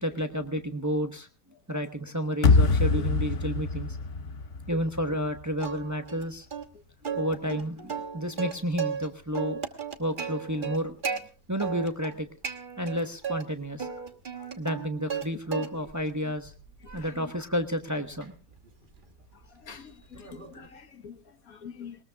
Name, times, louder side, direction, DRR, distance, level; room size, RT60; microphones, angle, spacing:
voice 1, 0.0-1.3 1.7-4.0 4.7-6.5 7.2-9.6 10.0-11.2 11.5-12.3 12.8-13.9 14.6-16.5 16.9-18.3, equal, 15° right, 7 dB, 0.9 m, -31 dB
sound 1, 2.4-5.5, left 4 dB, 60° left, 1.3 m, -24 dB
Plucked string instrument, 5.6-6.2 6.5-6.6 7.0-9.1 9.3-11.2 11.6-12.1 12.4-13.4 13.8-15.3 15.5-16.0 16.4-20.7, right 6 dB, 35° right, 1.4 m, -35 dB
voice 2, 19.7-21.2 21.5-22.0, left 7 dB, 80° left, 8 dB, 1.7 m, -45 dB
21.0 x 20.0 x 2.3 m, 0.35 s
omnidirectional pair, 1.5 m